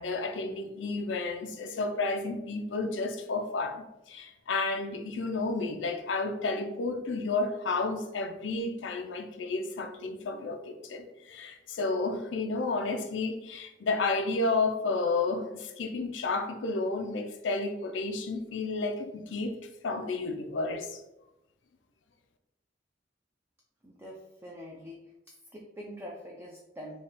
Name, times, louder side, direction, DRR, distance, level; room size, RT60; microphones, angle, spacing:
voice 1, 0.0-19.6 19.8-21.0, left 3 dB, 85° left, 0.5 m, -31 dB
voice 2, 23.8-25.0 25.5-27.0, equal, 10° right, 0.4 m, -44 dB
3.3 x 2.3 x 4.0 m
head